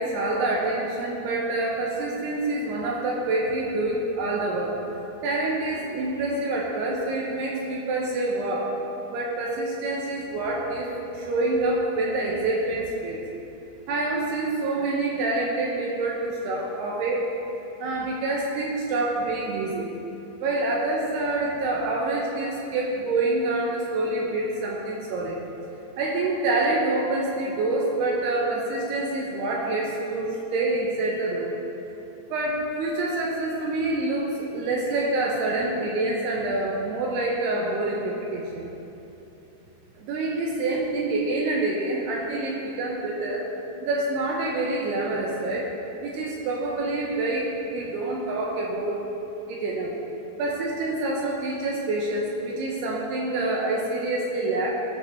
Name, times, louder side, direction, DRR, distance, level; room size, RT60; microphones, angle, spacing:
voice 1, 0.0-4.8 5.2-8.7 9.1-13.2 13.9-17.3 17.8-19.9 20.4-25.4 26.0-31.5 32.3-38.6 40.0-43.5 43.8-45.7 46.0-49.0 49.5-49.9 50.4-54.7, right 2 dB, 80° right, -3 dB, 2.5 m, -27 dB
17.5 x 6.5 x 2.9 m, 3.0 s
omnidirectional pair, 5.5 m